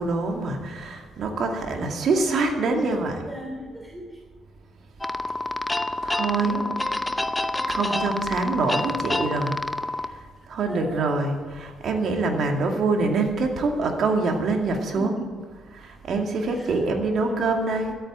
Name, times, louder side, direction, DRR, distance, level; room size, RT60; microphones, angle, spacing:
voice 1, 0.0-3.2 6.0-6.6 7.7-9.6 10.5-15.1 15.7-17.9, right 3 dB, 60° right, 3 dB, 2.2 m, -25 dB
voice 2, 2.3-4.2 6.4-6.9 7.7-8.1 10.7-11.0 14.9-15.3 16.4-17.3, equal, 10° right, -2 dB, 3.3 m, -37 dB
sound 1, 5.0-10.1, left 2 dB, 15° left, 0.7 m, -28 dB
12.5 x 9.2 x 8.7 m, 1.5 s
cardioid pair, 90°, 0 cm